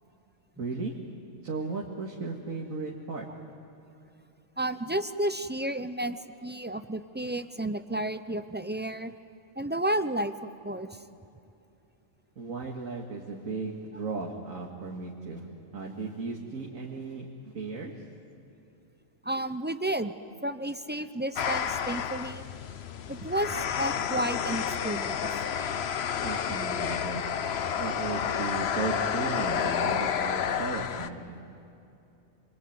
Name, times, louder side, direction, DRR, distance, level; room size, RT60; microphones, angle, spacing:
voice 1, 0.6-0.9 1.4-3.3 12.4-15.5 15.7-17.9 26.2-27.2 27.8-31.4, right 4 dB, 80° right, -1 dB, 2.4 m, -36 dB
voice 2, 4.6-9.1 9.6-11.0 19.2-20.1 20.4-22.4 23.1-25.3, right 1 dB, 15° right, 11 dB, 0.3 m, -32 dB
sound 1, 21.4-31.1, left 8 dB, 55° left, 1.0 m, -30 dB
26.5 x 22.5 x 9.5 m, 2.8 s
omnidirectional pair, 1.4 m